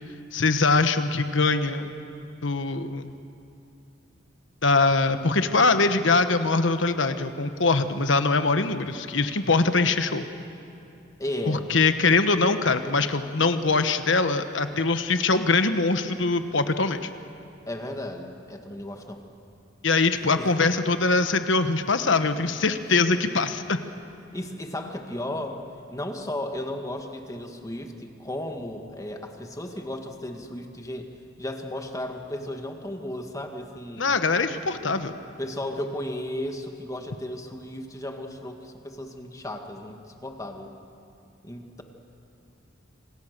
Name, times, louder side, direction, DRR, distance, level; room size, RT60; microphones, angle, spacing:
voice 1, 0.3-1.9 2.4-3.0 4.6-10.2 11.5-17.1 19.8-23.8 34.0-35.1, left 3 dB, 75° left, 9 dB, 1.3 m, -22 dB
voice 2, 11.2-11.7 17.7-19.2 20.4-20.5 22.9-23.0 24.3-25.6 25.9-31.1 31.4-34.1 35.4-40.7 41.4-41.8, left 1 dB, 20° left, 4 dB, 1.9 m, -34 dB
27.5 x 25.5 x 6.8 m, 2.8 s
head